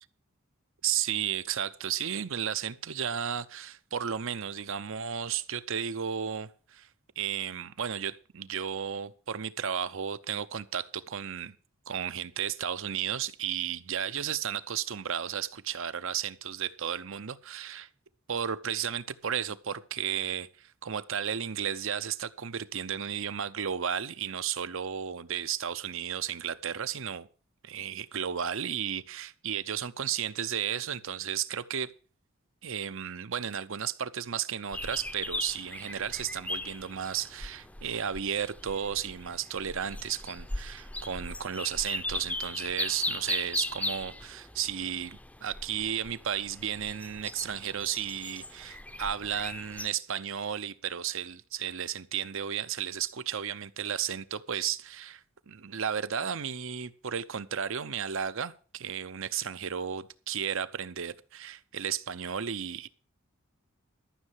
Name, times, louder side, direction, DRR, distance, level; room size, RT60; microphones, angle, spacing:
voice 1, 0.8-6.9 7.2-11.5 11.9-17.9 18.3-27.3 27.6-31.9 32.6-62.9, right 8 dB, 65° right, 0.7 m, -33 dB
sound 1, 34.7-49.9, left 2 dB, 5° left, 0.6 m, -38 dB
13.0 x 6.5 x 7.5 m
head